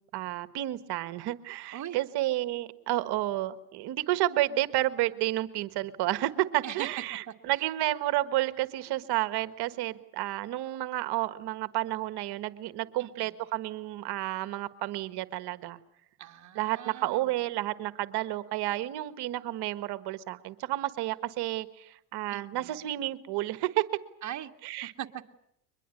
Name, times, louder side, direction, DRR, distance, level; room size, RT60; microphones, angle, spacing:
voice 1, 0.1-15.8 16.5-23.8 24.6-24.9, right 16 dB, 50° right, 12 dB, 1.6 m, -31 dB
voice 2, 7.3-7.7 13.0-13.3 16.2-17.3 22.3-22.7 24.2-24.5 24.8-25.3, right 11 dB, 35° right, 4 dB, 2.0 m, -41 dB
23.5 x 21.5 x 8.4 m, 0.77 s
supercardioid pair, 105°, 50 cm